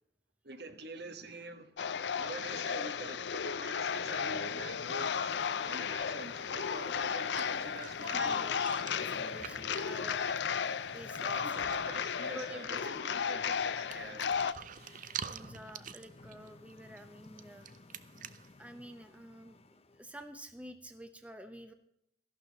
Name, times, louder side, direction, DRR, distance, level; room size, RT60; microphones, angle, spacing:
voice 1, 0.4-1.7 2.2-8.6 11.3-14.3, right 2 dB, 65° right, 1.3 m, -46 dB
sound 1, 1.8-14.5, left 7 dB, 70° left, 0.5 m, -34 dB
sound 2, 3.6-20.2, left 2 dB, 35° left, 0.7 m, -55 dB
sound 3, 6.6-6.7 7.1-10.9 11.2-11.3 11.5-11.9 12.3-12.9 13.5-18.5, right 8 dB, 45° right, 0.6 m, -47 dB
voice 2, 8.1-10.6 10.9-11.6 12.3-13.8 15.3-17.7 18.6-19.6 19.9-21.7, right 1 dB, 10° right, 0.7 m, -49 dB
14.0 x 11.5 x 4.0 m
head